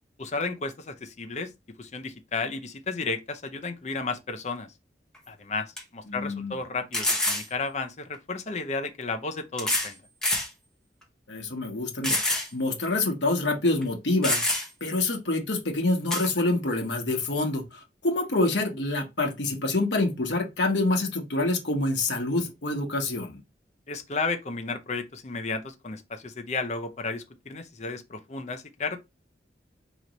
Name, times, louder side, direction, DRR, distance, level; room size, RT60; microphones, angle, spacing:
voice 1, 0.2-1.5 1.8-4.7 5.3-10.0 23.9-29.0, left 4 dB, 40° left, 0.6 m, -33 dB
sound 1, 5.1-5.2 5.8-5.9 6.9-7.5 8.6-8.7 9.6-9.9 10.2-10.5 11.0-11.1 12.0-12.5 12.8-12.9 13.8-13.9 14.2-14.9 16.1-16.3, left 1 dB, 5° left, 0.9 m, -26 dB
voice 2, 6.1-6.6 11.3-12.2 12.5-14.4 14.8-23.4, left 2 dB, 75° left, 1.1 m, -26 dB
3.9 x 3.0 x 3.0 m
head